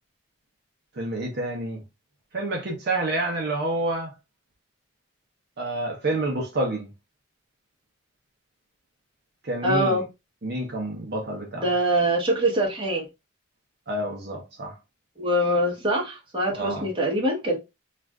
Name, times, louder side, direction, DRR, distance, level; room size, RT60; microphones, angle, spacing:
voice 1, 1.0-1.8 2.3-4.1 5.6-6.9 9.4-10.0 10.4-11.7 13.9-14.8 16.5-16.9, right 2 dB, 55° right, 0.7 m, -28 dB
voice 2, 9.6-10.0 11.6-13.0 15.2-17.6, right 1 dB, 25° right, 1.0 m, -23 dB
2.5 x 2.4 x 3.3 m
head